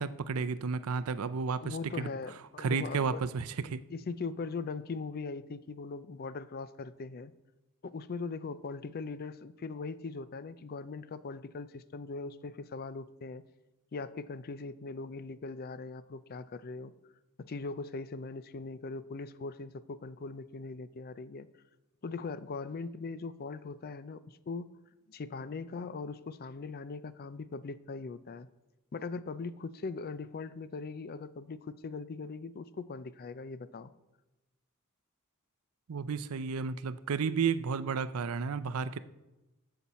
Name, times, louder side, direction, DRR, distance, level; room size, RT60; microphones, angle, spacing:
voice 1, 0.0-2.1 2.6-3.8 35.9-39.0, right 5 dB, 80° right, 14 dB, 0.5 m, -32 dB
voice 2, 1.5-3.2 3.9-7.3 7.8-13.4 13.9-16.9 17.4-21.5 22.0-24.7 25.1-28.5 28.9-33.9, left 4 dB, 45° left, 15 dB, 0.4 m, -40 dB
14.0 x 5.9 x 4.2 m, 1.0 s
head